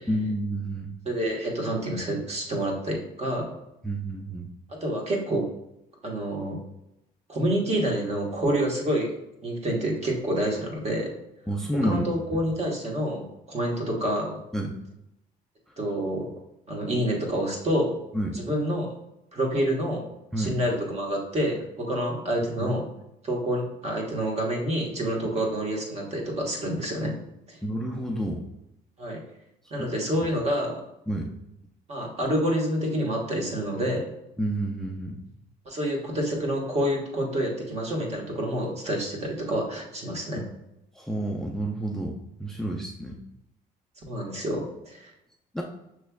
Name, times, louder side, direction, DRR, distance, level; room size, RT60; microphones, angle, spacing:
voice 1, 0.1-1.0 3.8-4.5 11.5-12.1 14.5-14.7 18.1-18.4 20.3-20.6 22.6-22.8 27.6-28.4 29.8-29.9 31.1-31.3 34.4-35.2 40.4-40.5 41.0-43.2 45.5-45.6, right 1 dB, 5° left, 0 dB, 0.4 m, -29 dB
voice 2, 1.0-3.5 4.8-5.5 6.0-6.6 7.3-9.1 9.4-11.1 11.8-14.4 15.8-16.3 16.7-18.0 18.3-18.9 19.3-20.1 20.4-22.9 23.2-27.1 27.5-27.6 29.0-29.2 29.7-30.8 31.9-34.1 35.6-40.4 44.1-45.1, right 1 dB, 40° right, -1 dB, 1.4 m, -28 dB
5.9 x 3.2 x 2.3 m, 0.85 s
cardioid pair, 110°, 17 cm